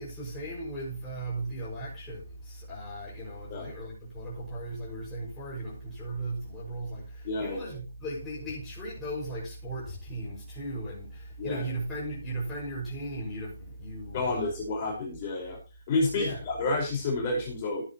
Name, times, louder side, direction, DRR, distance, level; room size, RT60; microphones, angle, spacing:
voice 1, 0.0-14.5 16.1-16.4, right 1 dB, 10° left, 6.1 m, -37 dB
voice 2, 7.2-7.7 11.4-11.6 14.1-15.6 15.9-17.8, left 2 dB, 30° left, 5.2 m, -30 dB
15.5 x 10.0 x 3.1 m
hypercardioid pair, 155°, 0 cm